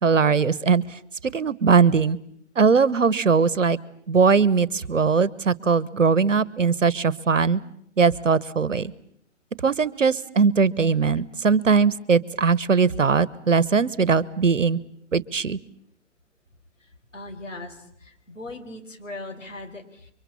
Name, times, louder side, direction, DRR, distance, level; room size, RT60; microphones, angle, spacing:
voice 1, 0.0-2.2 2.6-3.8 4.1-7.6 8.0-8.9 9.6-14.8 15.1-15.6, right 5 dB, 85° right, 20 dB, 1.3 m, -20 dB
voice 2, 16.8-20.1, left 2 dB, 90° left, 5 dB, 5.1 m, -39 dB
30.0 x 24.5 x 7.2 m, 0.68 s
figure-of-eight pair, 125°, 37 cm